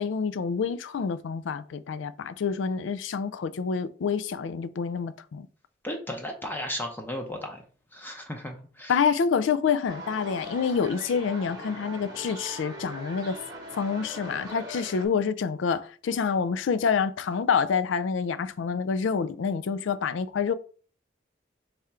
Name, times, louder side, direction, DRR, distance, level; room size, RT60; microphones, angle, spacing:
voice 1, 0.0-5.5 8.9-13.4 13.8-20.5, left 6 dB, 80° left, 0.4 m, -27 dB
voice 2, 5.8-7.6 7.9-9.0, left 1 dB, 10° left, 0.6 m, -35 dB
sound 1, 9.9-15.1, right 1 dB, 20° right, 1.0 m, -41 dB
3.6 x 3.4 x 4.2 m
head